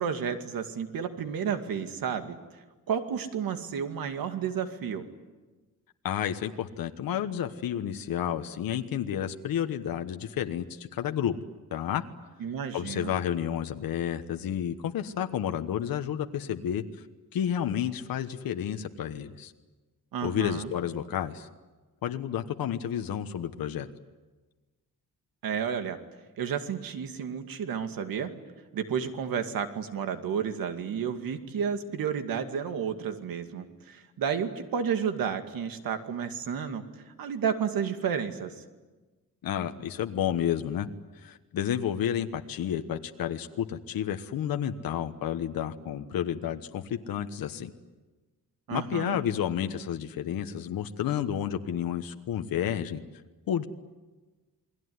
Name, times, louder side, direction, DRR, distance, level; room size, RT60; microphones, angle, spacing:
voice 1, 0.0-2.4 2.9-5.1 12.4-13.1 20.1-20.7 25.4-26.0 26.4-28.3 28.7-38.6 48.7-49.2, right 7 dB, 80° right, 7 dB, 2.4 m, -31 dB
voice 2, 6.0-11.3 11.7-12.0 12.7-16.8 17.3-19.5 20.2-21.5 22.0-23.9 39.4-40.9 41.2-47.7 48.7-53.0 53.5-53.6, left 9 dB, 85° left, 7 dB, 1.3 m, -31 dB
29.0 x 21.5 x 9.6 m, 1.2 s
wide cardioid pair, 165°, 34 cm